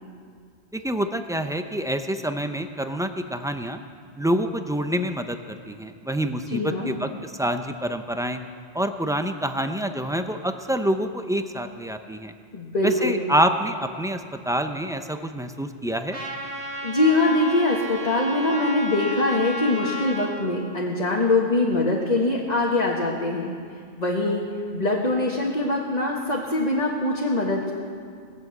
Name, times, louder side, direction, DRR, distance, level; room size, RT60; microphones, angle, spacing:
voice 1, 0.7-3.8 4.2-8.4 8.7-12.3 12.8-16.2, right 1 dB, 5° right, 7 dB, 0.4 m, -27 dB
voice 2, 6.5-6.9 12.5-13.2 16.8-23.5 24.0-24.4 24.7-27.7, left 2 dB, 40° left, -3 dB, 1.5 m, -23 dB
Trumpet, 16.1-20.3, equal, 80° right, 2.1 m, -33 dB
20.5 x 7.4 x 8.0 m, 2.1 s
omnidirectional pair, 1.1 m